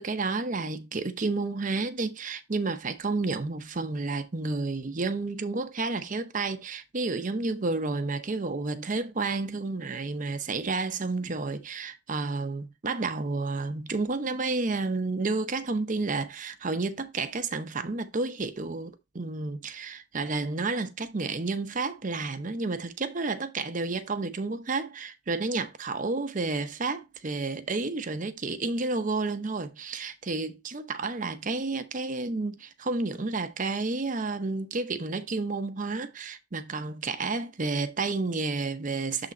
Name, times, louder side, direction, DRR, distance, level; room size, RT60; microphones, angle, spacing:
voice 1, 0.0-39.3, right 3 dB, 40° right, 0.7 m, -31 dB
7.0 x 3.8 x 4.2 m
head